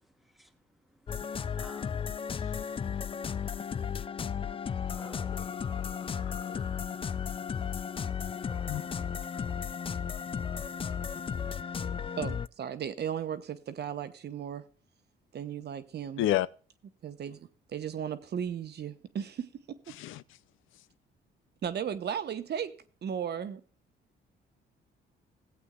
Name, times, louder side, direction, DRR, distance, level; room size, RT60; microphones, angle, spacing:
sound 1, 1.1-12.5, left 7 dB, 25° left, 0.4 m, -34 dB
voice 1, 1.4-2.7 4.8-5.5 8.4-9.7 10.6-10.8 11.4-12.2, equal, ahead, 1.4 m, -55 dB
voice 2, 5.7-6.6 8.7-8.8 16.2-16.5 19.9-20.2, left 13 dB, 85° left, 0.6 m, -31 dB
voice 3, 12.2-14.6 15.3-16.3 17.0-19.8 21.6-22.7 23.0-23.6, right 8 dB, 55° right, 1.1 m, -36 dB
17.5 x 8.1 x 2.4 m
cardioid pair, 90°, 20 cm